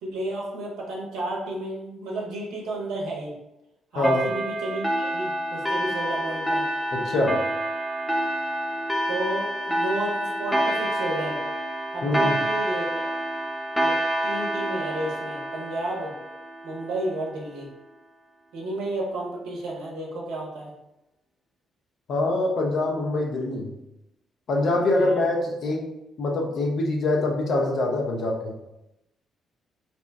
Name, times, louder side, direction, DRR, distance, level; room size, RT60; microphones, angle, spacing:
voice 1, 0.0-3.3 3.9-6.7 9.1-11.4 11.9-13.0 13.8-16.1 16.6-17.7 18.5-20.7 24.9-25.2, right 1 dB, 65° right, -2 dB, 0.7 m, -32 dB
sound 1, 4.0-17.1, right 1 dB, ahead, 0.7 m, -28 dB
voice 2, 6.9-7.3 12.0-12.4 22.1-23.7 24.5-25.9 26.2-28.5, left 2 dB, 55° left, -1 dB, 0.5 m, -24 dB
2.8 x 2.1 x 3.3 m, 0.90 s
figure-of-eight pair, 40°, 0 cm